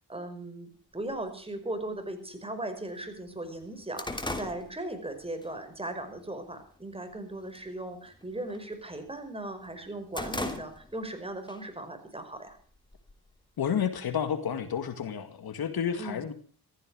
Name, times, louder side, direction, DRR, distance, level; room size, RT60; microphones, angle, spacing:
voice 1, 0.1-12.6 16.0-16.3, right 1 dB, 15° right, 7 dB, 5.3 m, -38 dB
sound 1, 1.1-1.2 2.1-2.2 2.7-2.8 3.1-5.5 5.9-6.2 6.6-7.1 7.4-7.7 8.0-9.3 9.7-11.1 11.5-11.6 12.5-13.4, left 2 dB, 10° left, 2.8 m, -38 dB
voice 2, 13.6-16.3, left 8 dB, 65° left, 10 dB, 2.1 m, -30 dB
15.5 x 14.5 x 6.3 m, 0.42 s
cardioid pair, 75°, 40 cm